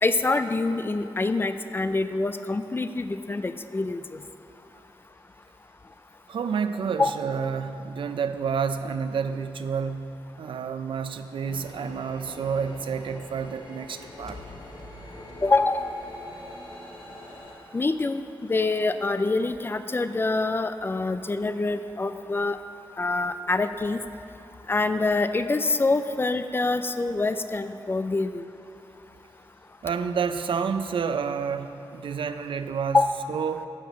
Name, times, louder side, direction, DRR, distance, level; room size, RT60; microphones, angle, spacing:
voice 1, 0.0-4.0 7.0-7.1 15.4-15.9 17.7-18.2 18.5-22.6 23.0-24.0 24.7-28.4 32.9-33.1, left 3 dB, 25° left, 10 dB, 0.4 m, -25 dB
voice 2, 6.3-14.4 29.8-33.0 33.3-33.7, right 6 dB, 85° right, 10 dB, 0.4 m, -29 dB
sound 1, 11.4-17.5, left 1 dB, 85° left, 1.8 m, -44 dB
sound 2, 13.9-17.0, left 1 dB, 5° left, 1.0 m, -49 dB
8.6 x 5.7 x 7.3 m, 2.9 s
wide cardioid pair, 110°, 9 cm